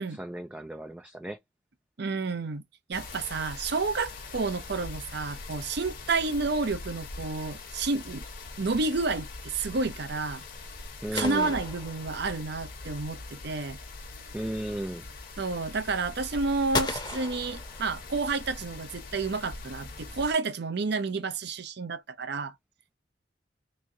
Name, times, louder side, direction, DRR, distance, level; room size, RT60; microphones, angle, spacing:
voice 1, 0.0-1.4 11.0-11.5 14.3-15.0, right 1 dB, 5° right, 0.3 m, -35 dB
voice 2, 2.0-2.6 2.9-8.2 8.6-10.4 11.1-13.8 15.4-22.5, right 3 dB, 60° right, 0.6 m, -30 dB
sound 1, 2.9-20.3, left 3 dB, 50° left, 1.1 m, -42 dB
sound 2, 11.1-12.6 16.7-18.3, left 3 dB, 25° left, 0.8 m, -35 dB
3.5 x 3.1 x 2.6 m
head